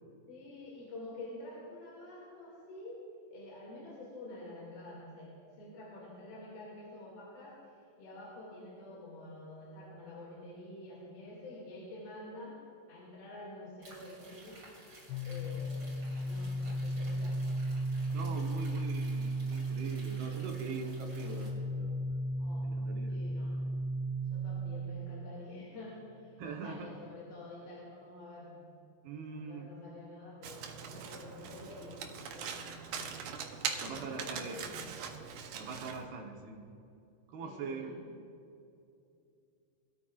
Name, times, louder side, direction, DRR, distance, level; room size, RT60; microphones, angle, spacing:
voice 1, 0.3-3.0 3.3-7.6 8.0-12.6 12.9-14.6 15.2-17.4 22.4-22.8 23.1-23.6 24.3-28.6 29.3-33.1 33.7-35.0 37.4-37.9, left 2 dB, 60° left, -6 dB, 4.1 m, -48 dB
sound 1, 13.8-21.5, right 1 dB, 30° right, 3.1 m, -55 dB
sound 2, 15.1-24.9, right 1 dB, 80° left, 2.9 m, -35 dB
voice 2, 18.1-21.5 21.8-22.0 22.6-23.2 26.4-26.9 29.0-29.7 33.8-34.6 35.6-36.6 37.3-38.0, right 4 dB, 70° right, 1 dB, 2.9 m, -42 dB
Domestic sounds home sounds, 30.4-36.1, right 7 dB, 90° right, 1.8 m, -41 dB
23.0 x 13.0 x 2.5 m, 2.7 s
omnidirectional pair, 5.0 m